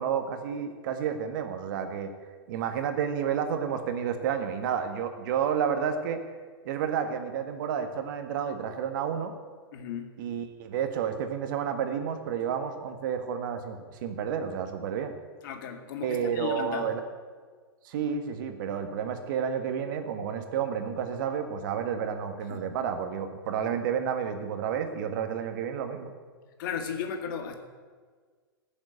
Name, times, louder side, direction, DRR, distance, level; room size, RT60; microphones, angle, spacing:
voice 1, 0.0-2.1 2.5-6.2 6.6-9.3 10.2-15.1 16.0-17.0 17.8-26.1, right 7 dB, 60° right, 7 dB, 1.7 m, -30 dB
voice 2, 9.7-10.1 15.4-16.9 22.5-22.6 26.6-27.5, left 7 dB, 60° left, 6 dB, 2.0 m, -35 dB
14.5 x 7.3 x 8.9 m, 1.5 s
hypercardioid pair, 110°, 12 cm